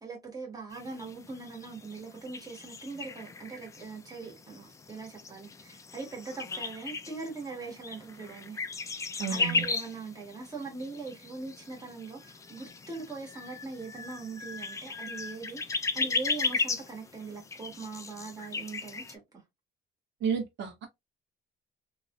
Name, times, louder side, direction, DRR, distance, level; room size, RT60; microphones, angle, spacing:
voice 1, 0.0-8.6 8.9-19.2, right 4 dB, 20° right, 1.4 m, -41 dB
sound 1, 0.7-19.2, left 4 dB, 15° left, 0.3 m, -36 dB
voice 2, 9.2-9.6 20.2-20.9, right 7 dB, 70° right, 1.4 m, -31 dB
3.2 x 2.9 x 2.4 m
cardioid pair, 170°, 19 cm